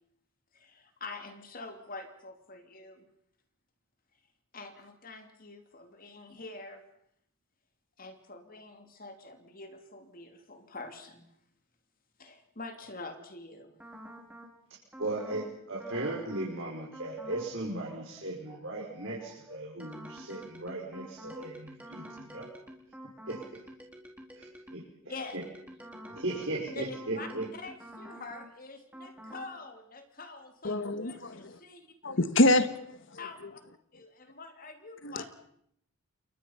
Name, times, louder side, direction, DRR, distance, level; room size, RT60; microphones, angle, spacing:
voice 1, 0.5-3.1 4.5-6.8 8.0-11.3 12.2-13.8 25.1-25.4 26.7-31.9 32.4-32.6 33.2-33.4 33.9-35.3, left 3 dB, 40° left, 6 dB, 2.9 m, -45 dB
sound 1, 13.8-14.5 14.9-15.5 15.8-16.5 16.9-17.5 17.8-24.9 25.3-28.5 28.9-29.5, equal, 5° right, 4.2 m, -48 dB
voice 2, 14.7-22.6 23.3-23.4 24.3-25.4 26.1-27.4, right 2 dB, 60° right, -4 dB, 5.5 m, -37 dB
voice 3, 30.6-31.5 32.0-33.0 35.0-35.3, left 1 dB, 60° left, 12 dB, 1.6 m, -26 dB
29.0 x 23.5 x 5.8 m, 0.70 s
head